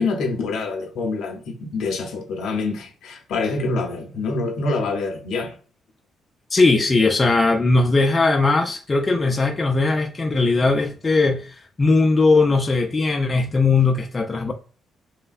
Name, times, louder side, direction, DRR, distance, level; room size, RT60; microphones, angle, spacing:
voice 1, 0.0-5.5, left 3 dB, 75° left, 0.6 m, -26 dB
voice 2, 6.5-14.5, left 3 dB, 25° left, 0.3 m, -19 dB
3.1 x 2.1 x 2.4 m
cardioid pair, 90°, 0 cm